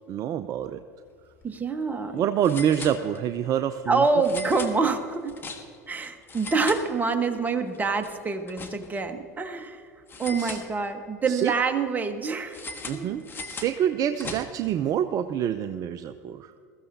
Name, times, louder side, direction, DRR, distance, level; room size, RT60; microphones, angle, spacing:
voice 1, 0.1-0.8 2.1-4.0 4.3-4.4 10.4-10.6 11.3-11.5 12.9-16.5, right 9 dB, 40° right, 10 dB, 0.5 m, -27 dB
sound 1, 1.2-1.4 1.7-1.8 2.4-3.5 4.2-5.9 6.2-7.4 7.7-9.1 10.1-11.2 12.5-14.8, left 4 dB, 25° left, 1.5 m, -40 dB
voice 2, 1.4-2.3 3.9-5.4 5.9-9.8 10.2-12.6 12.9-13.1, right 4 dB, 20° right, 6 dB, 1.3 m, -26 dB
20.5 x 14.5 x 2.8 m, 2.3 s
hypercardioid pair, 80°, 9 cm